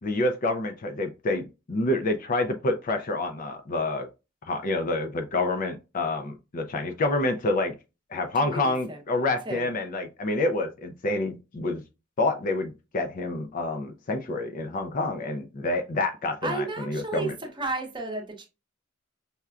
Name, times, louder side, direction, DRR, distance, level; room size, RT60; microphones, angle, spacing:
voice 1, 0.0-4.1 4.5-7.7 8.1-11.8 12.2-17.3, left 2 dB, 40° left, 0.4 m, -28 dB
voice 2, 8.4-9.0 9.5-9.7 16.4-18.5, right 3 dB, 25° right, 0.8 m, -33 dB
5.5 x 2.2 x 2.4 m
head